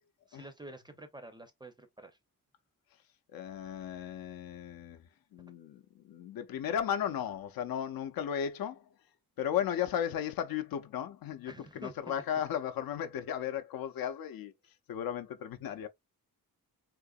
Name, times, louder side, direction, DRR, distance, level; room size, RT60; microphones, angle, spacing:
voice 1, 0.3-2.2 11.5-12.2, right 1 dB, 15° right, 0.5 m, -48 dB
voice 2, 3.3-5.0 5.3-8.8 9.4-14.5 14.9-15.9, left 9 dB, 80° left, 0.6 m, -35 dB
3.8 x 2.8 x 2.3 m
wide cardioid pair, 150°, 35 cm